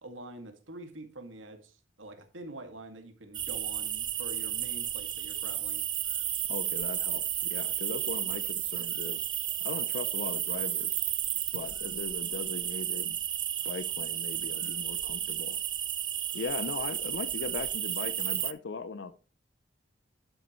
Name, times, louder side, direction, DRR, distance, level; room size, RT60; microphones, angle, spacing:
voice 1, 0.0-5.8 11.5-11.7, right 2 dB, 85° right, 6 dB, 2.1 m, -46 dB
sound 1, 3.3-18.5, right 10 dB, 25° right, 0.4 m, -33 dB
voice 2, 6.5-9.2 9.6-11.0 11.5-13.2 13.6-15.6 16.3-19.1, left 4 dB, 60° left, 14 dB, 0.5 m, -39 dB
11.5 x 8.1 x 3.1 m, 0.33 s
head